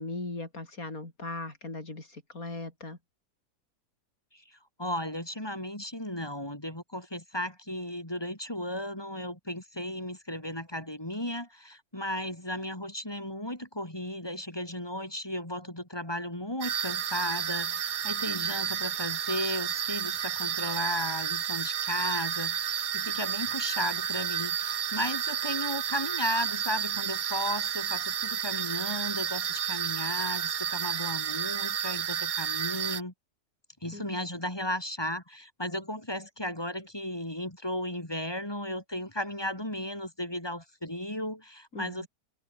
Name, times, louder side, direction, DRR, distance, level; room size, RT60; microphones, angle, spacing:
voice 1, 0.0-3.0 33.9-34.2 41.7-42.1, left 2 dB, 60° left, 5.7 m, -39 dB
voice 2, 4.3-33.1 33.8-42.1, left 1 dB, 15° left, 3.7 m, -35 dB
sound 1, 16.6-33.0, right 8 dB, 85° right, 0.4 m, -31 dB
open air
omnidirectional pair, 1.7 m